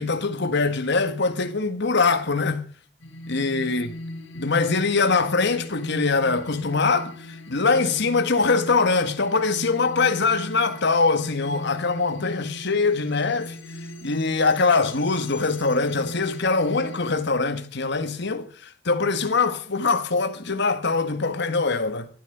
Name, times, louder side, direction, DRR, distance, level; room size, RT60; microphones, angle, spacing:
voice 1, 0.0-2.6 3.3-3.9 4.3-13.6 14.0-22.1, left 4 dB, 60° left, 1.7 m, -23 dB
sound 1, 3.0-17.1, left 1 dB, 90° left, 3.6 m, -39 dB
12.5 x 12.5 x 6.8 m
head